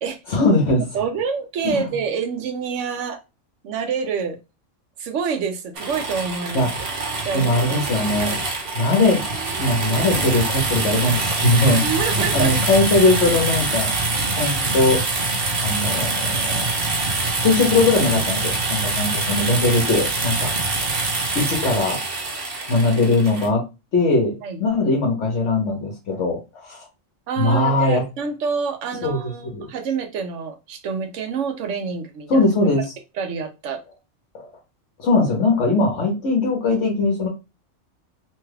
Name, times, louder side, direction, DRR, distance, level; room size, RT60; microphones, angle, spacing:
voice 1, 0.3-0.8 1.6-1.9 6.5-6.7 7.3-8.4 8.7-9.2 9.6-11.8 12.2-13.9 14.3-15.0 15.6-16.7 17.2-20.8 21.3-22.0 22.7-23.6 23.9-26.9 27.4-28.0 29.0-29.7 32.3-32.8 34.3-34.5 35.0-37.3, left 2 dB, 75° left, 1.2 m, -20 dB
voice 2, 0.9-3.2 3.6-4.4 5.0-6.7 7.2-7.8 8.2-8.4 11.8-12.6 24.4-24.6 27.3-32.5 33.2-33.8, right 6 dB, 80° right, 1.0 m, -27 dB
sound 1, 5.8-23.5, right 3 dB, 55° right, 1.0 m, -24 dB
3.1 x 2.3 x 3.2 m
omnidirectional pair, 1.2 m